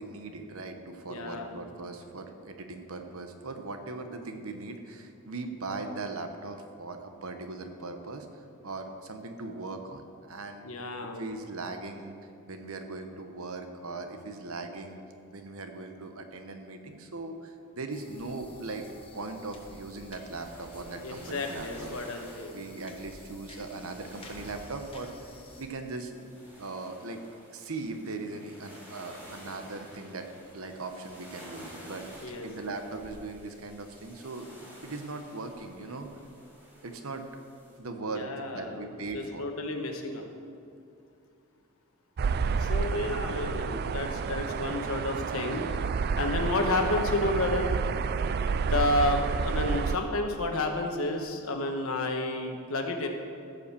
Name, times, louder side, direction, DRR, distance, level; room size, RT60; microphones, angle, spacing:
voice 1, 0.0-10.6 11.2-12.2 12.5-15.0 15.3-18.9 19.1-21.9 22.5-26.1 26.6-27.2 27.5-30.3 30.5-34.5 34.8-36.1 36.8-37.2 37.7-38.3 38.5-39.5, right 3 dB, 65° right, 6 dB, 1.0 m, -39 dB
voice 2, 1.1-1.6 10.6-11.3 21.0-22.6 32.2-32.5 38.1-40.3 42.6-45.7 46.1-47.7 48.6-53.1, left 2 dB, 65° left, 3 dB, 1.3 m, -31 dB
sound 1, 17.9-25.7, left 2 dB, 25° left, 1.3 m, -50 dB
sound 2, 20.3-37.8, equal, 10° right, 2.7 m, -51 dB
sound 3, 42.2-50.0, right 5 dB, 45° right, 0.3 m, -29 dB
15.0 x 5.4 x 6.9 m, 2.5 s
head